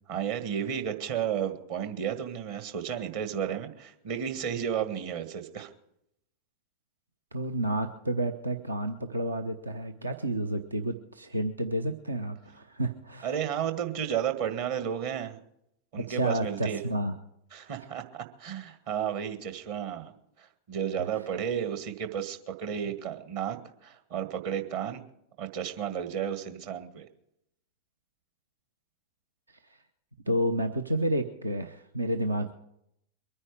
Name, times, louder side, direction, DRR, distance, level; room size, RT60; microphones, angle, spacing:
voice 1, 0.1-5.7 13.2-15.4 15.9-16.8 17.5-20.1 20.4-25.0 25.4-27.1, right 9 dB, 50° right, 8 dB, 1.8 m, -33 dB
voice 2, 7.3-13.4 16.0-17.2 30.3-32.5, right 1 dB, 80° right, 8 dB, 0.8 m, -30 dB
23.0 x 9.9 x 4.9 m, 0.77 s
figure-of-eight pair, 90°, 0 cm